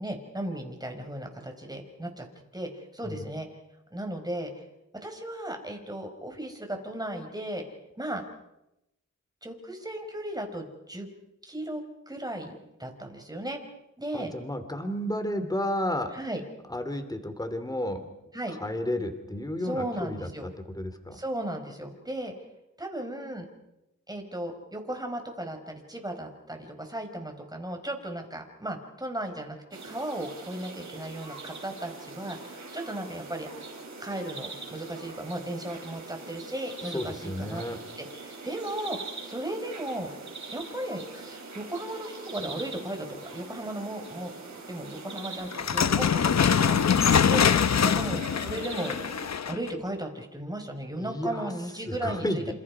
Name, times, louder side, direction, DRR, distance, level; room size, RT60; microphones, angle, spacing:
voice 1, 0.0-2.3 2.5-3.5 3.9-4.6 5.0-7.6 8.0-8.2 9.4-11.1 11.4-12.5 12.8-13.6 14.0-14.3 16.1-16.4 18.3-18.6 19.6-20.5 21.1-22.3 22.8-23.5 24.1-29.6 29.8-33.5 34.0-37.6 38.0-40.1 40.5-44.3 44.7-48.9 49.5-52.3, right 1 dB, 10° right, 4 dB, 5.3 m, -36 dB
voice 2, 14.1-16.1 16.7-18.0 18.5-21.2 36.8-37.8 50.9-51.5 51.9-52.5, left 1 dB, 10° left, 8 dB, 3.0 m, -32 dB
sound 1, 29.7-49.3, right 3 dB, 65° right, 5.0 m, -43 dB
sound 2, 45.5-49.7, left 7 dB, 60° left, 0.9 m, -23 dB
29.0 x 28.0 x 4.9 m, 0.89 s
wide cardioid pair, 80°, 31 cm